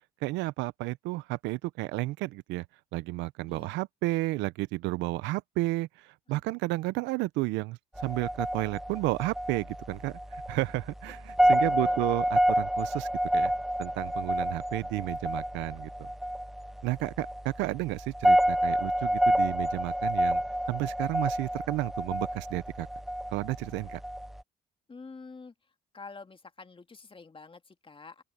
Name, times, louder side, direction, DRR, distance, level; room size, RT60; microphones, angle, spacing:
voice 1, 0.2-2.6 2.9-13.5 13.8-16.1 16.8-20.4 20.7-22.9 23.3-24.0, right 20 dB, 80° right, 0.8 m, -32 dB
sound 1, 8.0-24.4, equal, ahead, 0.4 m, -29 dB
voice 2, 11.4-12.0 24.9-25.5 25.9-28.2, left 4 dB, 30° left, 2.1 m, -47 dB
open air
supercardioid pair, 60°, 19 cm